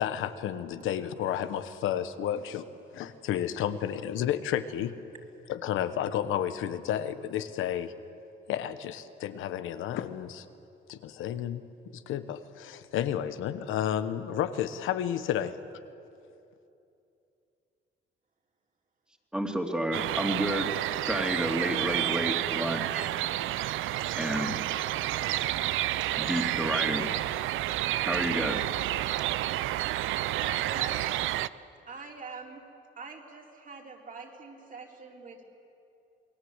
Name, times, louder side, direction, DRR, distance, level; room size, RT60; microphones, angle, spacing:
voice 1, 0.0-2.7 2.9-4.9 5.5-7.9 8.5-10.4 10.9-11.7 11.9-15.6, left 10 dB, 85° left, 11 dB, 1.2 m, -31 dB
voice 2, 19.3-20.7 21.0-23.1 24.2-24.6 26.2-27.1 28.0-28.7, equal, 5° right, 4 dB, 2.8 m, -30 dB
sound 1, 19.9-31.5, right 14 dB, 85° right, 0.6 m, -30 dB
voice 3, 30.4-31.0 31.9-32.6 33.0-35.4, right 4 dB, 40° right, 1 dB, 3.9 m, -43 dB
28.0 x 20.0 x 8.1 m, 2.7 s
cardioid pair, 90°, 20 cm